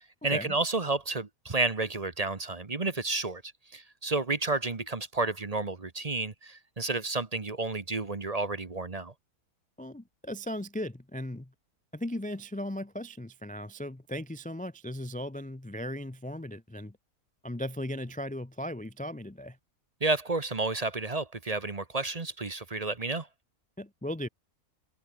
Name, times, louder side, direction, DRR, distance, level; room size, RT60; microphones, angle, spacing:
voice 1, 0.2-3.4 3.7-9.1 20.0-23.3, right 3 dB, 25° right, 1.1 m, -31 dB
voice 2, 9.8-11.5 11.9-17.0 17.4-19.6 23.8-24.3, left 1 dB, 10° left, 0.5 m, -37 dB
omnidirectional pair, 1.6 m